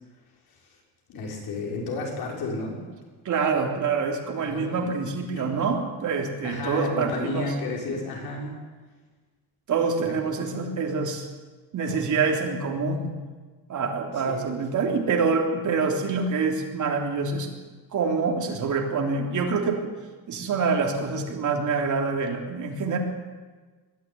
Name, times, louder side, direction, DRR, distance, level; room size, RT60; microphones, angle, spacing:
voice 1, 1.1-2.8 4.4-4.9 5.3-5.5 6.4-8.5 10.0-10.1 14.3-14.4, left 2 dB, 60° left, -1 dB, 6.3 m, -32 dB
voice 2, 3.2-7.5 9.7-11.3 11.7-13.1 13.7-17.5 17.9-19.8 20.3-23.0, right 4 dB, 45° right, 1 dB, 3.3 m, -26 dB
21.5 x 13.0 x 9.3 m, 1.3 s
cardioid pair, 150°, 41 cm